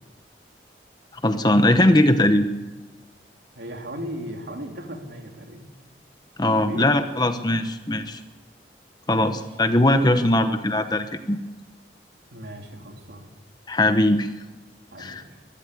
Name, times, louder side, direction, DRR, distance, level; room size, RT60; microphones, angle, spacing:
voice 1, 1.1-2.5 6.4-8.2 9.1-11.4 13.7-14.3 15.0-15.2, left 1 dB, 25° left, 9 dB, 0.9 m, -20 dB
voice 2, 3.5-5.7 6.6-7.0 9.1-9.4 12.3-13.3 14.9-15.4, equal, 80° right, 2 dB, 3.3 m, -36 dB
22.0 x 14.5 x 8.5 m, 1.2 s
head